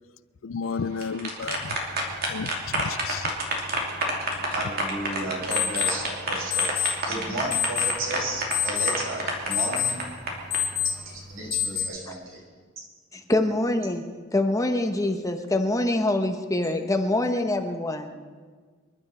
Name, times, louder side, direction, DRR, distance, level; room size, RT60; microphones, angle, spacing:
voice 1, 0.4-1.8 2.2-3.3, left 5 dB, 70° left, 0.4 m, -32 dB
sound 1, 0.8-10.6, right 2 dB, 50° right, 2.8 m, -29 dB
sound 2, 1.4-11.8, left 8 dB, 55° left, 3.2 m, -31 dB
voice 2, 4.5-10.0 10.9-12.4 12.8-12.9, right 2 dB, 80° right, 5.6 m, -33 dB
voice 3, 13.1-14.0 14.3-18.1, left 1 dB, 15° left, 1.0 m, -25 dB
26.5 x 11.5 x 4.3 m
head